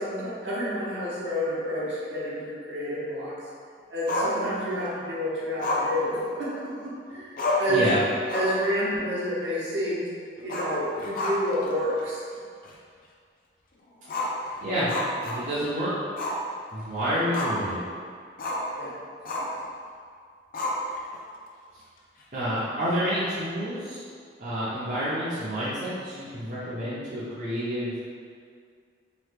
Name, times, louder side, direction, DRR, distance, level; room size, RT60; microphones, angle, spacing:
voice 1, 0.0-3.3 3.9-6.5 7.1-7.9 8.3-12.2 18.8-18.9, equal, 70° right, -8 dB, 0.8 m, -29 dB
Growling, 4.1-4.9 5.6-6.8 7.1-7.2 7.4-7.8 8.2-8.7 9.0-9.1 10.4-11.7 12.0-12.1 12.6-12.7 14.0-15.7 16.2-16.4 16.8-17.7 18.4-18.7 19.2-19.6 20.5-21.2, left 2 dB, 50° left, 0.4 m, -30 dB
voice 2, 15.2-15.9 16.7-17.8 22.3-24.0 24.4-27.9, equal, 40° right, -11 dB, 0.6 m, -28 dB
2.9 x 2.2 x 3.3 m, 2.2 s
head